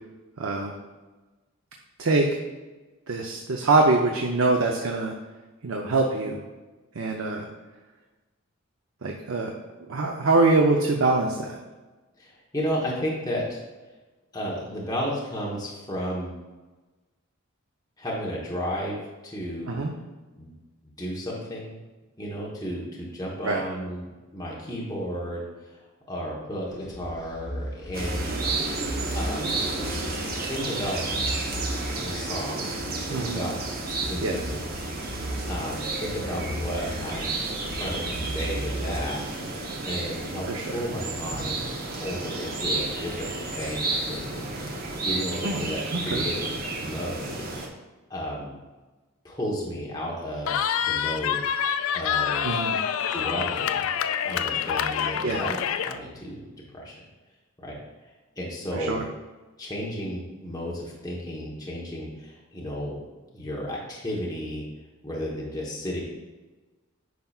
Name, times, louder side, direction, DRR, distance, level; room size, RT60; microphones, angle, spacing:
voice 1, 0.4-0.7 2.0-2.3 3.1-5.1 5.6-6.4 6.9-7.5 9.0-9.5 9.9-11.6 19.7-19.9 23.4-23.6 33.1-33.5 34.2-34.4 40.5-40.8 45.4-46.2 52.4-52.8 55.2-55.5 58.7-59.0, right 3 dB, 70° right, 1 dB, 0.6 m, -24 dB
voice 2, 12.2-13.6 14.3-16.3 18.0-19.0 19.2-19.8 20.4-20.5 20.8-21.8 22.2-24.1 24.3-25.8 26.1-28.3 29.1-29.5 30.3-31.2 31.9-32.7 33.1-33.6 34.1-34.6 35.5-37.4 37.7-39.2 39.9-41.7 42.0-47.4 48.1-48.5 49.2-51.4 51.9-52.6 53.1-53.9 54.2-56.4 56.7-57.0 57.6-57.8 58.4-59.0 59.6-63.0 63.3-64.6 65.0-66.0, equal, 20° left, -5 dB, 1.1 m, -33 dB
sound 1, 26.7-39.0, equal, 5° right, 1.6 m, -36 dB
sound 2, 27.9-47.7, right 3 dB, 45° right, 0.9 m, -32 dB
Cheering, 50.5-56.0, left 8 dB, 75° left, 0.3 m, -27 dB
9.3 x 5.6 x 2.4 m, 1.2 s
head